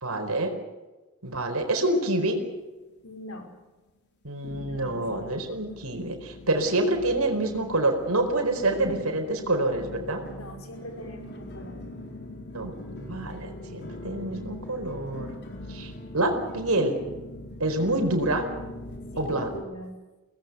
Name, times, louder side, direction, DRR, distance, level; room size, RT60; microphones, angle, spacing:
voice 1, 0.0-0.5 1.2-2.4 4.2-10.2 12.5-15.3 15.7-17.0 17.6-18.5 19.2-19.5, right 2 dB, 80° right, 5 dB, 4.5 m, -27 dB
sound 1, 1.3-2.2 2.5-3.1 3.6-3.7 4.4-19.6, left 1 dB, 50° left, 4.5 m, -42 dB
voice 2, 3.0-3.5 4.6-5.0 10.3-11.8 19.1-20.0, equal, 65° left, 5 dB, 5.4 m, -42 dB
23.5 x 19.0 x 8.1 m, 1.2 s
head